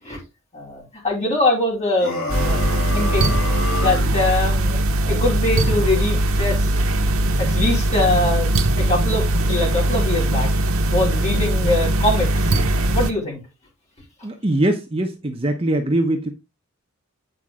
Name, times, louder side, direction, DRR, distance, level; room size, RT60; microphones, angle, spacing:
voice 1, 0.5-3.4 3.7-4.8 5.1-6.7 7.4-10.5 10.9-13.4, left 2 dB, 30° left, 4.4 m, -23 dB
sound 1, 2.0-4.2, left 2 dB, 80° left, 5.1 m, -28 dB
sound 2, 2.3-13.1, right 1 dB, 75° right, 1.0 m, -20 dB
voice 2, 14.2-16.3, right 1 dB, 25° right, 0.9 m, -21 dB
9.2 x 5.3 x 3.6 m
head